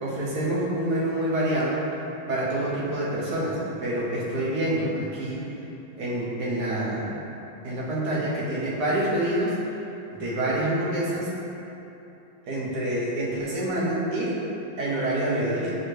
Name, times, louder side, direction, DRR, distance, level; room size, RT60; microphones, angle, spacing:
voice 1, 0.0-1.8 2.3-5.4 6.0-7.1 7.6-9.5 10.1-11.3 12.5-14.4 14.8-15.8, right 1 dB, 65° right, -6 dB, 1.1 m, -27 dB
4.4 x 2.7 x 3.1 m, 2.9 s
omnidirectional pair, 2.1 m